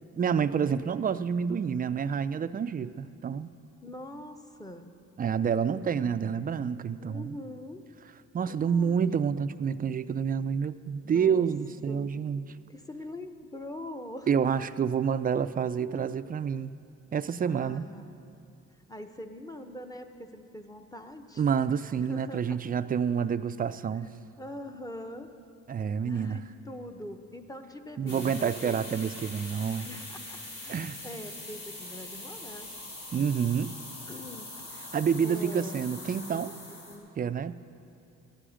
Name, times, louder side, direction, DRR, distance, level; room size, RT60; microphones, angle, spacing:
voice 1, 0.2-3.5 5.2-7.4 8.3-12.4 14.3-16.7 17.1-17.8 21.4-24.1 25.7-26.4 28.0-29.9 30.7-31.0 33.1-33.7 34.9-36.5 37.2-37.5, right 7 dB, 30° right, 12 dB, 0.4 m, -28 dB
voice 2, 3.8-4.9 6.0-6.5 7.0-7.8 8.5-9.0 11.0-11.5 11.9-12.1 12.7-14.3 15.9-16.3 17.5-18.2 18.9-21.4 21.9-22.6 24.4-25.3 26.0-28.9 29.9-32.7 34.1-34.5 34.8-34.9 35.2-35.9 36.2-37.1, left 1 dB, 10° left, 6 dB, 0.8 m, -43 dB
sound 1, 28.1-37.0, left 2 dB, 75° left, 3.4 m, -43 dB
14.5 x 11.5 x 5.0 m, 2.8 s
cardioid pair, 90°, 30 cm